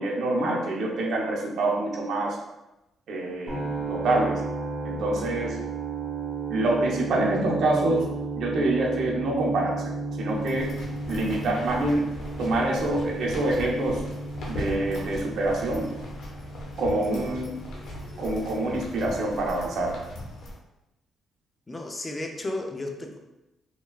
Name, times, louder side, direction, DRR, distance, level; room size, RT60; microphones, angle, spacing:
voice 1, 0.0-2.4 3.1-3.6 3.9-4.4 4.8-5.6 6.5-8.0 8.4-9.8 10.2-10.7 11.1-12.0 12.4-14.0 14.5-15.9 16.8-17.5 18.2-19.9, right 2 dB, 70° right, -2 dB, 0.6 m, -26 dB
sound 1, 3.5-19.4, right 3 dB, 15° right, 0.9 m, -34 dB
sound 2, 10.3-20.5, left 1 dB, 70° left, 0.6 m, -39 dB
voice 2, 21.7-23.2, left 2 dB, 25° left, 3 dB, 0.4 m, -33 dB
2.9 x 2.2 x 2.3 m, 0.95 s
cardioid pair, 90°, 0 cm